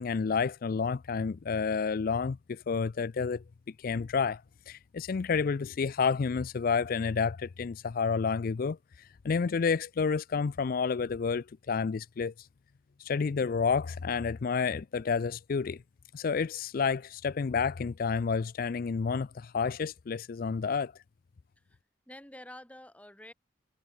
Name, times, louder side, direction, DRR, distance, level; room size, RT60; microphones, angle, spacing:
voice 1, 0.0-3.4 3.8-12.5 13.0-15.8 16.1-21.0, left 5 dB, 50° left, 0.4 m, -30 dB
voice 2, 22.1-23.3, left 1 dB, 10° left, 4.0 m, -49 dB
head